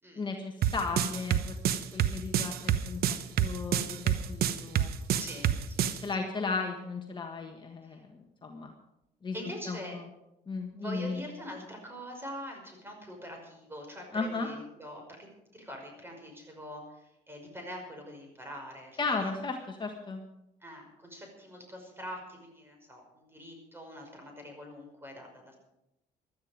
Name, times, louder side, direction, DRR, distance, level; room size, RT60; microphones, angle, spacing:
voice 1, 0.2-3.0 3.4-5.2 6.0-8.7 9.2-9.4 9.7-10.0 10.5-11.2 14.1-14.5 19.0-20.2, left 4 dB, 25° left, 2 dB, 1.6 m, -35 dB
sound 1, 0.6-6.0, right 10 dB, 65° right, 1.0 m, -27 dB
voice 2, 5.2-5.8 7.9-8.0 9.3-10.0 10.8-15.2 15.5-19.0 20.6-25.5, equal, 15° right, 2 dB, 5.5 m, -44 dB
16.0 x 12.5 x 5.1 m, 0.89 s
cardioid pair, 110°, 17 cm